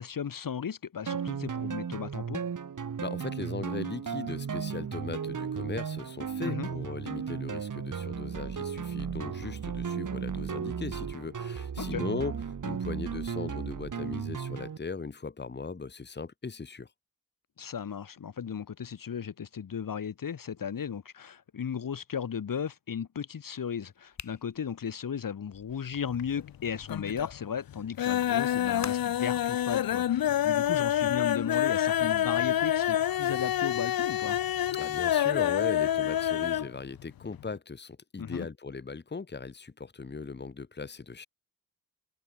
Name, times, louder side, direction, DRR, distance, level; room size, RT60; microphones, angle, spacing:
voice 1, 0.0-2.4 6.4-6.7 11.8-12.0 17.6-34.4 38.2-38.5, left 7 dB, 70° left, 2.5 m, -35 dB
sound 1, 1.1-14.8, right 7 dB, 60° right, 2.8 m, -35 dB
voice 2, 3.0-16.9 34.7-41.3, left 4 dB, 30° left, 1.7 m, -38 dB
sound 2, 24.1-27.4 28.8-29.3, left 5 dB, 55° left, 4.8 m, -46 dB
sound 3, 25.9-26.6 26.8-27.4 27.7-36.7 37.0-37.1 37.4-37.5, left 11 dB, 90° left, 0.7 m, -27 dB
wide cardioid pair, 135°, 35 cm